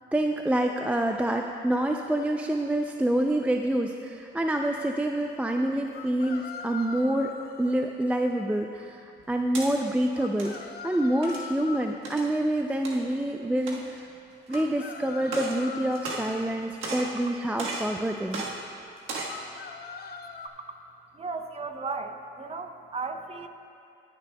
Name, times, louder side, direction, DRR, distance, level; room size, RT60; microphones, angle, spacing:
voice 1, 0.1-7.3 7.6-10.6 10.8-14.0 14.5-18.4, right 1 dB, 5° right, 3 dB, 0.3 m, -27 dB
sound 1, 3.0-3.1 5.9-7.8 10.1-12.0 14.5-16.3 19.3-20.5, left 5 dB, 50° left, 0.6 m, -41 dB
sound 2, 9.2-9.7 10.2-10.6 11.2-11.5 12.0-12.3 12.8-13.0 13.6-14.0 14.5-14.6 15.2-15.6 15.9-16.5 16.8-17.1 17.6-17.9 18.3-18.5 19.0-19.4, right 3 dB, 90° right, 1.4 m, -35 dB
voice 2, 21.2-23.5, right 4 dB, 30° right, 6 dB, 0.7 m, -35 dB
19.0 x 6.9 x 2.2 m, 2.6 s
cardioid pair, 90°, 20 cm